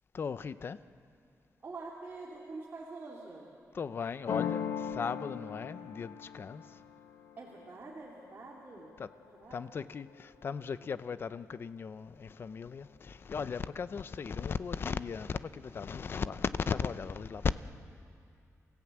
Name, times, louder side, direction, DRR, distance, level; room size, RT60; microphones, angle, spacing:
voice 1, 0.1-0.8 3.7-6.8 9.0-9.1 9.5-17.5, left 6 dB, 40° left, 14 dB, 0.6 m, -37 dB
voice 2, 1.6-3.5 7.4-9.6, right 3 dB, 35° right, -3 dB, 2.3 m, -46 dB
sound 1, 4.3-9.8, left 8 dB, 80° left, 1.4 m, -40 dB
28.0 x 15.5 x 8.7 m, 2.5 s
wide cardioid pair, 170°, 6 cm